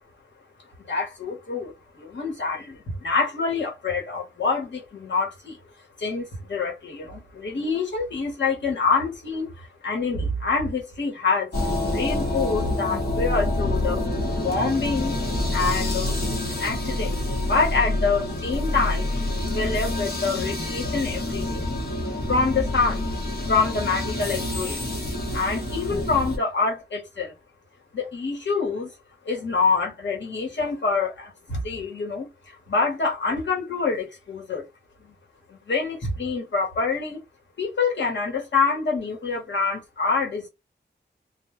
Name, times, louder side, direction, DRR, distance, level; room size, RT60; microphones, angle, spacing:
voice 1, 0.9-5.6 6.0-11.5 11.9-14.0 14.4-15.2 15.5-19.1 19.5-21.6 22.3-23.0 23.5-24.9 25.3-27.3 27.9-28.9 29.2-34.6 35.0-35.1 35.5-37.2 37.6-40.5, left 4 dB, 85° left, 1.0 m, -26 dB
sound 1, 11.5-26.4, left 1 dB, 60° left, 1.0 m, -27 dB
2.2 x 2.1 x 3.0 m
wide cardioid pair, 115°, 18 cm